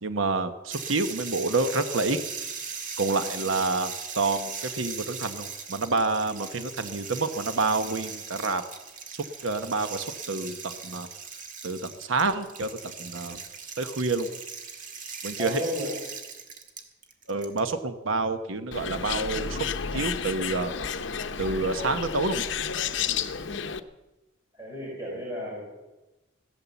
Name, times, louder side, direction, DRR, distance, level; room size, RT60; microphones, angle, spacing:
voice 1, 0.0-2.2 3.0-8.6 9.1-11.1 11.6-13.4 13.8-14.3 15.2-15.6 17.3-19.6 19.9-20.7 21.4-22.4, right 3 dB, 85° right, 9 dB, 1.0 m, -28 dB
sound 1, 0.7-17.6, right 6 dB, 40° right, 1.7 m, -39 dB
voice 2, 15.4-15.9 24.5-25.6, left 1 dB, 20° right, -4 dB, 5.4 m, -33 dB
Bird, 18.7-23.8, left 7 dB, 70° left, 0.8 m, -31 dB
16.0 x 12.5 x 7.0 m, 1.1 s
head